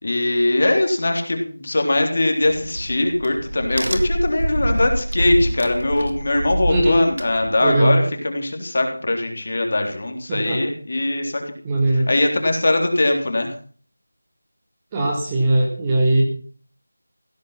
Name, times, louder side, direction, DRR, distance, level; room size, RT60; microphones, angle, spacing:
voice 1, 0.0-11.5 11.9-13.6, left 2 dB, 45° left, 4 dB, 3.6 m, -21 dB
Crack, 2.4-7.9, right 1 dB, 70° right, 3.0 m, -26 dB
voice 2, 6.7-7.0 7.6-8.0 10.3-10.6 11.6-12.1 14.9-16.2, right 1 dB, 10° right, -1 dB, 1.8 m, -19 dB
16.0 x 12.0 x 5.7 m, 0.43 s
figure-of-eight pair, 175°, 0 cm